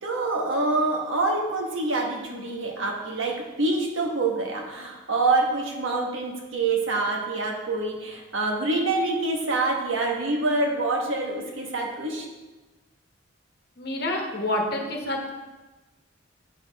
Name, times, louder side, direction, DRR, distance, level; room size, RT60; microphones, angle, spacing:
voice 1, 0.0-12.2, right 2 dB, 80° right, 0 dB, 1.4 m, -26 dB
voice 2, 13.8-15.3, left 1 dB, 50° left, 1 dB, 1.1 m, -28 dB
8.0 x 6.3 x 3.5 m, 1.2 s
head